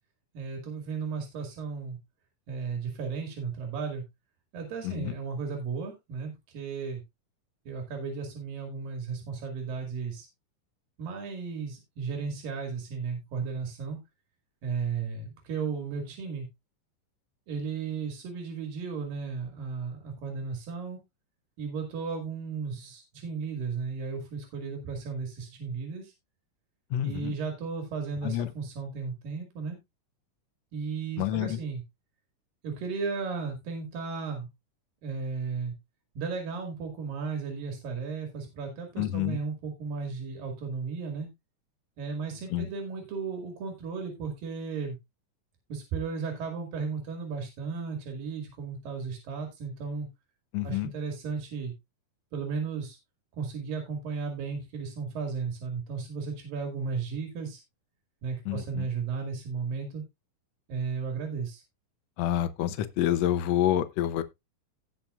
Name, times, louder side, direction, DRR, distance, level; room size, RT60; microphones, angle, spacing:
voice 1, 0.3-2.0 2.5-4.0 4.5-7.0 7.7-10.3 11.0-14.0 14.6-16.5 17.5-21.0 21.6-26.1 27.0-29.8 30.7-31.8 32.6-34.5 35.0-35.7 36.2-41.3 42.0-45.0 45.7-50.1 50.6-51.7 52.3-53.0 53.3-57.6 58.2-60.0 60.7-61.6, right 5 dB, 90° right, 3.8 m, -35 dB
voice 2, 26.9-27.3 28.2-28.5 31.2-31.6 39.0-39.4 42.5-42.7 50.5-50.9 58.5-58.9 62.2-64.2, left 12 dB, 75° left, 1.6 m, -28 dB
17.5 x 6.0 x 2.4 m
omnidirectional pair, 3.9 m